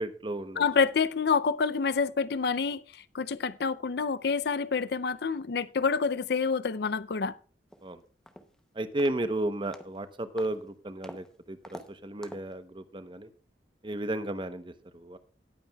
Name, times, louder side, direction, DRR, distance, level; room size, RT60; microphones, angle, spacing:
voice 1, 0.0-0.6 7.8-8.0 8.8-13.3 13.8-15.2, right 1 dB, 25° right, 0.8 m, -33 dB
voice 2, 0.6-7.4, left 5 dB, 60° left, 0.5 m, -28 dB
sound 1, 7.7-7.8 8.3-8.6 9.0-9.3 9.7-10.0 10.4-10.6 11.0-11.3 11.6-11.9 12.2-12.5, equal, 5° left, 0.7 m, -46 dB
18.5 x 8.7 x 2.3 m
head